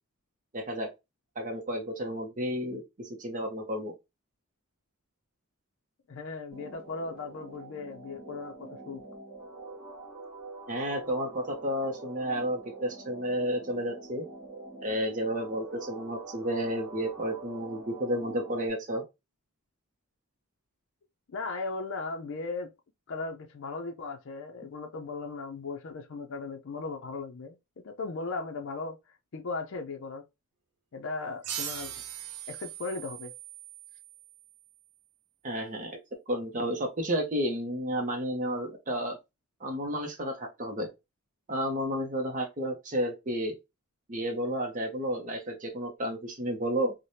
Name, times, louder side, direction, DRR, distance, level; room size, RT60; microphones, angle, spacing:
voice 1, 0.5-0.9 1.4-3.9 10.7-14.2 14.8-19.0 35.4-36.0 36.3-39.2 39.6-40.9 41.5-43.5 44.1-46.9, equal, 35° right, 0.6 m, -31 dB
voice 2, 6.1-9.0 21.3-22.7 23.1-27.6 27.8-29.0 29.3-30.2 30.9-31.9 32.5-33.3, left 3 dB, 55° left, 0.5 m, -37 dB
sound 1, 6.5-18.7, right 3 dB, 5° right, 0.9 m, -45 dB
sound 2, 31.4-34.7, right 10 dB, 80° right, 0.5 m, -40 dB
3.2 x 2.1 x 2.6 m
head